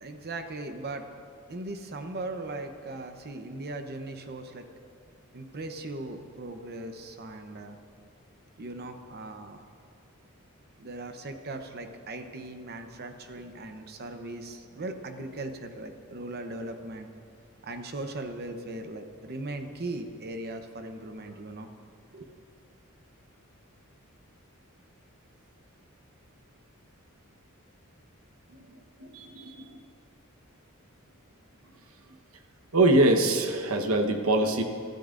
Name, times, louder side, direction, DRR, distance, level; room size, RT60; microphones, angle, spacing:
voice 1, 0.0-1.1 1.5-4.6 5.3-7.8 8.6-9.6 10.8-17.1 17.6-21.7 22.1-22.4, right 2 dB, 50° right, 6 dB, 0.9 m, -38 dB
voice 2, 29.0-29.8 32.7-34.6, right 2 dB, 70° right, 5 dB, 1.1 m, -23 dB
23.5 x 13.0 x 2.6 m, 2.4 s
head